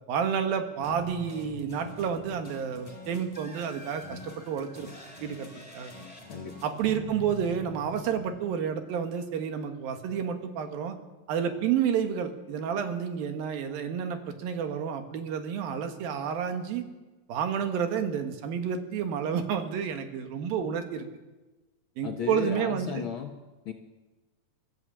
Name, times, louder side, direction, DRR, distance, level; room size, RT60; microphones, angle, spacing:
voice 1, 0.1-4.9 5.2-5.5 5.7-5.9 6.6-11.0 11.3-16.8 17.3-21.1 22.0-23.0, right 7 dB, 90° right, 6 dB, 3.4 m, -30 dB
sound 1, 0.8-9.1, left 1 dB, 10° left, 3.6 m, -45 dB
voice 2, 22.0-23.4 23.6-23.7, left 7 dB, 75° left, 3 dB, 1.1 m, -34 dB
24.5 x 14.0 x 7.5 m, 1.2 s
omnidirectional pair, 4.0 m